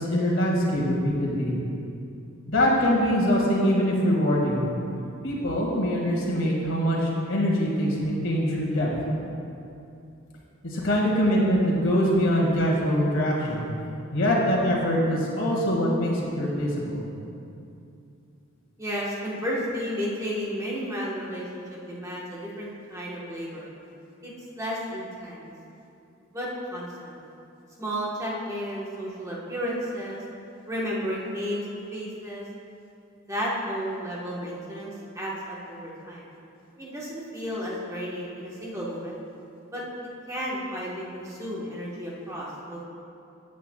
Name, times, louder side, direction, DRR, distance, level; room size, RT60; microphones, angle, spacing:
voice 1, 0.0-1.5 2.5-4.6 5.2-8.9 10.6-13.6 14.1-17.0, equal, 65° left, -3 dB, 1.9 m, -23 dB
voice 2, 18.8-23.7 24.2-25.5 26.3-27.2 27.8-30.2 30.7-32.5 33.3-36.3 36.8-39.2 39.7-39.8 40.3-42.8, equal, 15° right, -6 dB, 1.2 m, -33 dB
13.5 x 8.3 x 2.3 m, 2.6 s
head